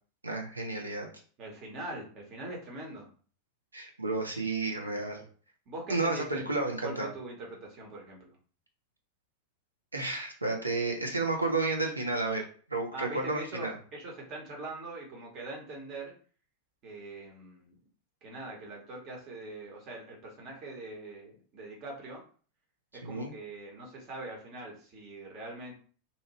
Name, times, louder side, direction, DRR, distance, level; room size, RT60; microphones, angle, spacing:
voice 1, 0.2-1.1 3.7-5.2 5.9-7.1 9.9-12.4 12.7-13.8 23.0-23.3, right 3 dB, 80° right, 1 dB, 0.7 m, -31 dB
voice 2, 1.4-3.1 5.7-6.5 6.8-8.4 12.9-16.1 16.8-17.8 18.2-22.2 22.9-25.7, right 2 dB, 35° right, -1 dB, 1.1 m, -42 dB
2.8 x 2.5 x 3.0 m, 0.42 s
figure-of-eight pair, 90°, 0 cm